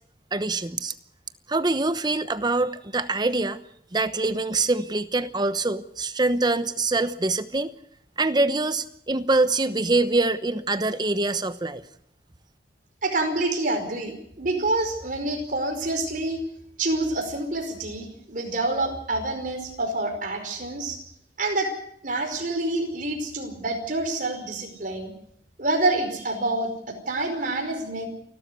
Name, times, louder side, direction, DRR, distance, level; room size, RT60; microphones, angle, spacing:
voice 1, 0.3-0.9 1.5-3.6 3.9-7.7 8.2-11.8, right 2 dB, 25° right, 12 dB, 1.0 m, -24 dB
voice 2, 13.0-16.4 16.8-21.0 21.4-21.7 22.0-25.1 25.6-26.7 27.1-28.1, right 2 dB, 50° right, 4 dB, 5.1 m, -27 dB
29.5 x 12.5 x 8.2 m, 0.70 s
head